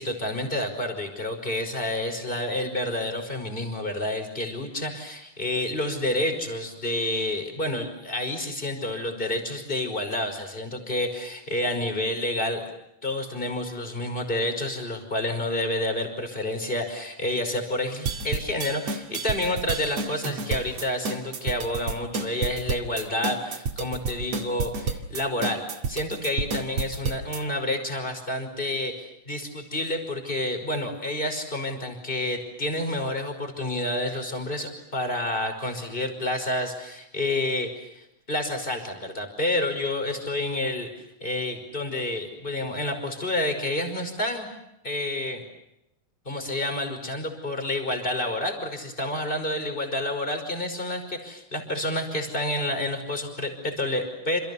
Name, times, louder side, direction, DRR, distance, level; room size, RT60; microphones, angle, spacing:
voice 1, 0.0-12.6 13.0-25.6 25.9-40.9 41.2-44.5 44.8-45.4 46.3-54.4, left 1 dB, 15° left, 6 dB, 5.4 m, -29 dB
sound 1, 18.1-27.4, right 4 dB, 55° right, 3.1 m, -30 dB
29.0 x 28.5 x 7.1 m, 0.83 s
omnidirectional pair, 3.7 m